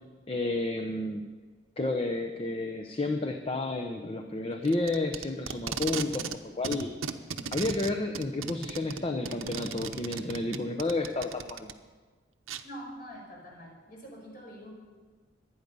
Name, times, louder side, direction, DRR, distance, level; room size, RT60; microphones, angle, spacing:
voice 1, 0.3-1.3 1.8-6.9 7.5-11.7, left 2 dB, 25° left, 5 dB, 0.8 m, -31 dB
Packing tape duct tape, 4.6-6.4 6.6-11.7 12.5-12.6, right 6 dB, 90° right, 0.9 m, -36 dB
voice 2, 12.6-14.7, equal, 45° left, -2 dB, 5.4 m, -45 dB
23.5 x 9.5 x 5.4 m, 1.4 s
head